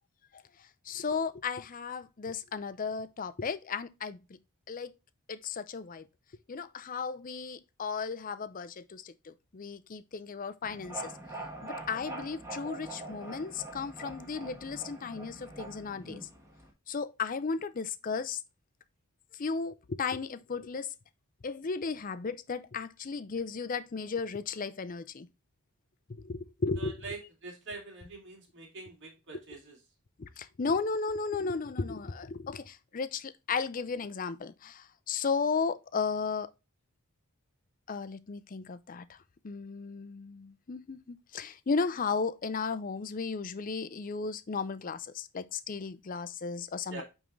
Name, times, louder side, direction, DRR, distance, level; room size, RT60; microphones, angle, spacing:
voice 1, 0.9-4.4 4.7-4.9 5.3-6.1 6.5-11.1 11.6-16.3 16.9-18.4 19.4-20.9 21.4-25.3 26.1-27.1 30.2-36.5 37.9-39.2 39.4-47.0, left 5 dB, 40° left, 0.5 m, -35 dB
sound 1, 10.6-16.7, right 2 dB, 15° right, 1.4 m, -44 dB
voice 2, 26.8-29.8 46.9-47.0, right 3 dB, 55° right, 2.3 m, -44 dB
9.0 x 3.6 x 3.1 m
head